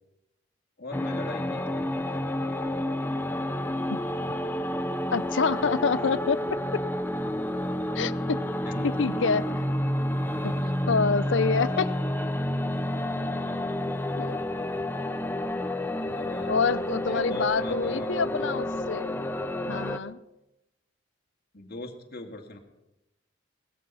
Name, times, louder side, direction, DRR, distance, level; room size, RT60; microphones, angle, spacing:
voice 1, 0.8-1.9 8.6-9.4 16.1-16.6 17.0-18.5 21.5-22.6, left 2 dB, 55° left, 2 dB, 2.2 m, -40 dB
sound 1, 0.9-20.0, left 1 dB, 10° left, 0.7 m, -30 dB
voice 2, 5.1-6.8 7.9-8.4 8.8-9.5 10.4-11.9 14.2-14.4 16.5-19.2 19.7-20.2, left 5 dB, 70° left, 16 dB, 0.6 m, -27 dB
18.0 x 14.0 x 5.7 m, 0.93 s
head